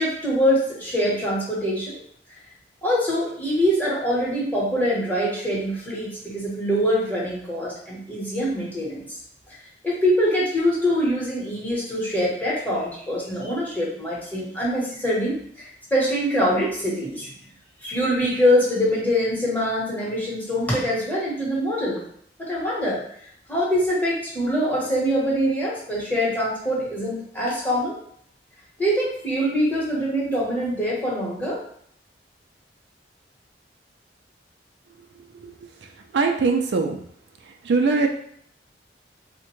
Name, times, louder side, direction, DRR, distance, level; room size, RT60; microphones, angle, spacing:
voice 1, 0.0-2.0 2.3-2.4 2.8-9.1 9.8-17.3 17.8-22.0 22.4-23.0 23.5-28.0 28.8-31.6, equal, 10° left, -6 dB, 0.9 m, -24 dB
voice 2, 36.1-37.0 37.6-38.1, right 4 dB, 75° right, 3 dB, 0.4 m, -21 dB
3.6 x 2.1 x 3.0 m, 0.65 s
head